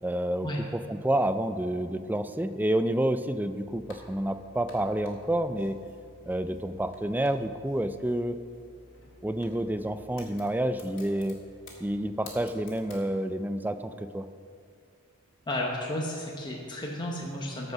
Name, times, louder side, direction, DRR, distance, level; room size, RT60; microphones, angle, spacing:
voice 1, 0.0-5.8 6.2-8.4 9.2-11.4 11.8-14.3, right 1 dB, 10° right, 10 dB, 0.4 m, -29 dB
sound 1, 3.6-13.1, left 2 dB, 60° left, 2.1 m, -52 dB
voice 2, 15.5-17.7, left 1 dB, 20° left, -1 dB, 1.0 m, -33 dB
14.0 x 5.4 x 6.0 m, 2.3 s
head